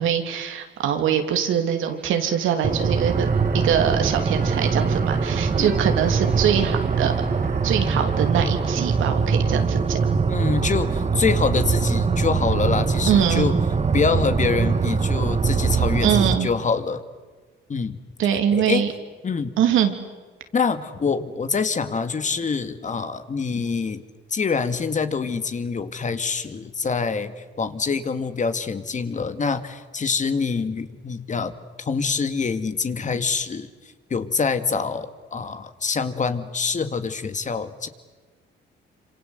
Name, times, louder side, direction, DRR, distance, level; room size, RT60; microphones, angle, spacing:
voice 1, 0.0-3.3 3.5-7.1 7.6-10.0 13.0-13.5 16.0-16.5 18.2-18.9 19.6-19.9, right 9 dB, 85° right, 6 dB, 3.0 m, -23 dB
sound 1, 1.4-10.3, right 5 dB, 55° right, 4.0 m, -42 dB
sound 2, 2.6-16.4, right 5 dB, 35° right, 1.6 m, -22 dB
voice 2, 10.3-13.5 13.9-17.0 17.7-18.0 18.3-18.8 19.2-19.5 20.5-24.0 24.3-31.5 31.8-37.9, left 5 dB, 40° left, 10 dB, 2.1 m, -25 dB
27.0 x 26.5 x 8.1 m, 1.4 s
cardioid pair, 90°, 20 cm